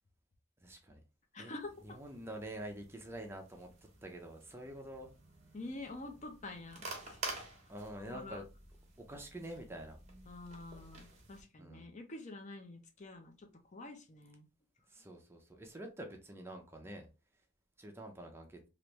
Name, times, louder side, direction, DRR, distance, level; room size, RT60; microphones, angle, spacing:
voice 1, 0.6-1.0 1.4-1.5 1.8-3.7 4.0-5.1 7.7-8.4 9.0-10.0 11.6-11.9 14.9-17.1 17.8-18.6, right 1 dB, 10° right, 0.5 m, -47 dB
voice 2, 1.3-1.7 5.5-7.2 8.0-8.4 10.3-14.5, left 2 dB, 35° left, 0.6 m, -47 dB
sound 1, 1.6-11.4, right 3 dB, 35° right, 1.0 m, -50 dB
3.3 x 2.6 x 3.0 m
head